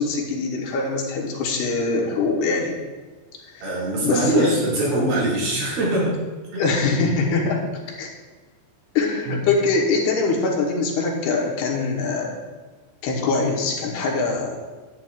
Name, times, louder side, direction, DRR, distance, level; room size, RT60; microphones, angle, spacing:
voice 1, 0.0-2.7 4.0-4.6 6.6-7.6 8.0-8.1 9.0-12.4 13.0-14.6, left 3 dB, 80° left, -1 dB, 3.0 m, -23 dB
voice 2, 3.6-6.1 6.5-6.7 9.3-9.5, right 1 dB, 60° right, -6 dB, 3.7 m, -23 dB
11.0 x 8.9 x 2.4 m, 1.3 s
omnidirectional pair, 4.8 m